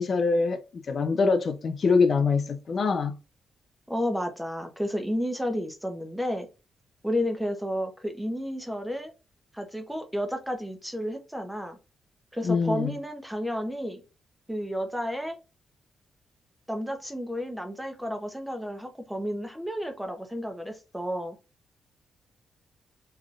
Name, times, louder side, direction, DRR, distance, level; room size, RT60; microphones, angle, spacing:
voice 1, 0.0-3.2 12.4-12.9, left 4 dB, 40° left, 0.4 m, -24 dB
voice 2, 3.9-6.5 7.0-9.1 9.5-11.8 12.3-14.0 14.5-15.4 16.7-21.4, equal, ahead, 0.7 m, -31 dB
3.8 x 3.2 x 2.4 m
cardioid pair, 145°, 0 cm